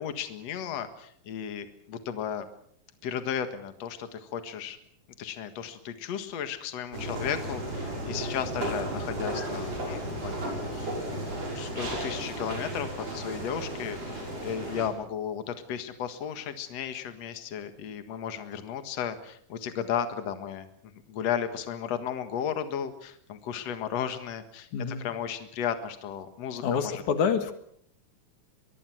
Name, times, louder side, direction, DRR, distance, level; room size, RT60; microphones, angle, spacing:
voice 1, 0.0-2.5 3.0-4.8 5.2-10.9 11.6-20.7 21.1-24.7 25.0-27.0, left 8 dB, 65° left, 9 dB, 2.8 m, -34 dB
sound 1, 6.9-14.9, right 1 dB, 55° right, 7.9 m, -34 dB
voice 2, 24.7-25.1 26.6-27.5, left 6 dB, 90° left, 8 dB, 3.3 m, -27 dB
23.0 x 23.0 x 6.2 m, 0.66 s
omnidirectional pair, 3.4 m